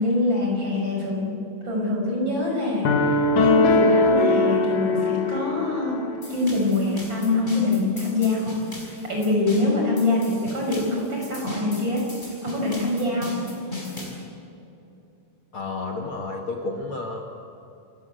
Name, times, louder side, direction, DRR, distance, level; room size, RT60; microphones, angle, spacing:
voice 1, 0.0-13.4, left 2 dB, 25° right, -1 dB, 6.2 m, -25 dB
sound 1, 2.8-6.1, left 2 dB, 55° left, 2.7 m, -20 dB
sound 2, 6.2-14.2, left 1 dB, 10° left, 5.6 m, -37 dB
voice 2, 15.5-17.2, left 3 dB, 90° left, 1 dB, 1.1 m, -31 dB
28.0 x 15.5 x 8.2 m, 2.8 s
omnidirectional pair, 5.5 m